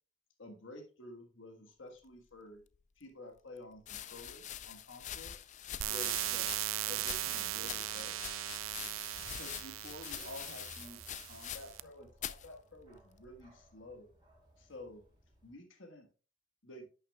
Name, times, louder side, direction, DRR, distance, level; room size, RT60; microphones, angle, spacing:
voice 1, 0.4-2.6 3.0-5.4 5.8-6.5 6.9-8.2 9.3-14.1 14.6-15.1 15.4-16.1 16.6-16.8, left 2 dB, 70° left, 3 dB, 1.5 m, -51 dB
sound 1, 2.7-2.8 3.8-11.9 12.2-12.5 13.2-13.6, left 10 dB, 40° left, 0.4 m, -45 dB
sound 2, 5.8-11.8, right 15 dB, 90° right, 0.4 m, -38 dB
Bark, 8.5-15.5, equal, 25° right, 4.1 m, -62 dB
11.0 x 6.5 x 2.3 m, 0.36 s
head